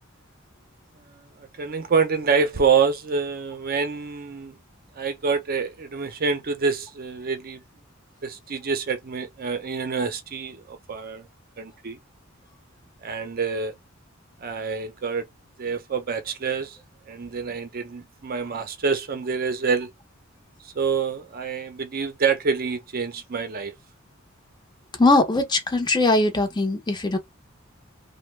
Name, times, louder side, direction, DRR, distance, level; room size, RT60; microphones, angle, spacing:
voice 1, 1.4-4.6 5.0-7.6 8.2-11.3 11.6-12.0 13.0-13.7 14.4-15.3 15.6-16.8 17.1-19.9 20.6-23.7, right 5 dB, 45° right, 0.5 m, -26 dB
voice 2, 25.0-27.2, left 2 dB, 20° left, 0.7 m, -20 dB
2.6 x 2.2 x 3.1 m
head